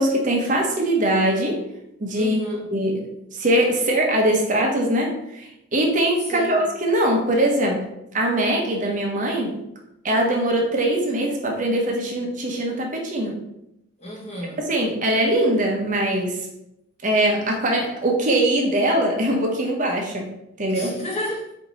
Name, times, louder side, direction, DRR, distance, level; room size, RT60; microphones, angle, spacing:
voice 1, 0.0-1.6 2.0-2.4 2.7-7.9 8.1-9.6 10.0-13.4 14.6-16.4 17.0-20.3 20.6-21.0, right 1 dB, 35° right, 0 dB, 0.7 m, -22 dB
voice 2, 2.2-2.6 6.2-6.7 14.0-14.6 20.7-21.5, equal, 30° left, -2 dB, 1.1 m, -32 dB
4.5 x 2.7 x 4.0 m, 0.82 s
head